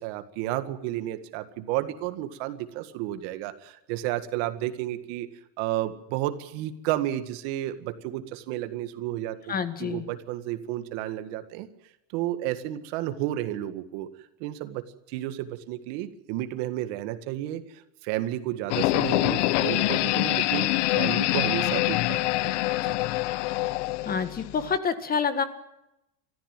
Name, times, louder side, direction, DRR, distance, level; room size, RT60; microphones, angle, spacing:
voice 1, 0.0-5.3 5.6-11.7 12.1-14.1 14.4-20.7 21.0-22.5 22.8-23.0, right 14 dB, 65° right, 10 dB, 2.0 m, -32 dB
voice 2, 9.5-10.0 24.1-25.4, left 6 dB, 25° left, 10 dB, 1.7 m, -27 dB
sound 1, 18.7-24.8, left 18 dB, 80° left, 0.8 m, -25 dB
24.5 x 14.5 x 9.1 m, 0.89 s
supercardioid pair, 140°, 35 cm